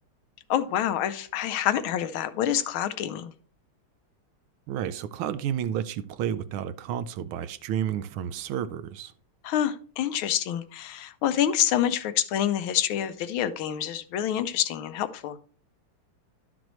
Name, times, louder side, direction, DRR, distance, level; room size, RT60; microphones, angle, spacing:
voice 1, 0.5-3.3 9.4-15.4, left 10 dB, 80° left, 1.4 m, -27 dB
voice 2, 4.7-9.1, right 9 dB, 75° right, 1.4 m, -31 dB
11.5 x 6.1 x 3.1 m
omnidirectional pair, 2.4 m